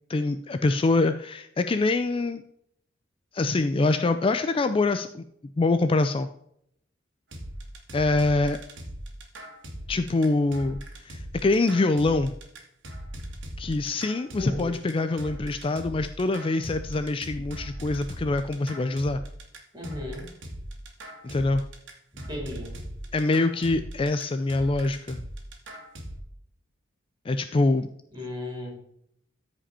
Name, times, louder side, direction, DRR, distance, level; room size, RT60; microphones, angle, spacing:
voice 1, 0.1-2.4 3.3-5.2 5.6-6.3 7.9-8.6 9.9-10.8 11.0-12.3 13.6-19.2 21.2-21.6 23.1-25.2 27.3-27.9, left 2 dB, 30° left, 9 dB, 0.4 m, -24 dB
sound 1, 7.3-26.2, right 1 dB, 75° right, 2.0 m, -39 dB
voice 2, 14.4-14.8 19.7-20.2 22.1-22.8 28.1-28.7, left 1 dB, 20° right, -1 dB, 3.9 m, -35 dB
14.0 x 5.0 x 4.3 m, 0.72 s
head